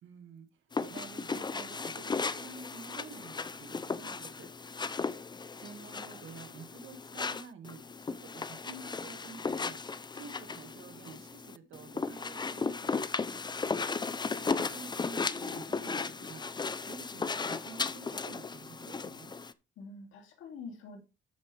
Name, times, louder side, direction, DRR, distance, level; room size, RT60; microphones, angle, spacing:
voice 1, 0.0-4.5 5.6-7.8 8.1-9.8 10.1-12.9 14.4-16.4 16.9-19.3, right 5 dB, 75° right, 2.1 m, -49 dB
sound 1, 0.7-19.5, left 4 dB, 20° left, 0.6 m, -36 dB
voice 2, 13.2-14.1 19.8-21.0, left 4 dB, 80° left, 2.6 m, -47 dB
13.5 x 5.7 x 3.4 m
cardioid pair, 90°, 20 cm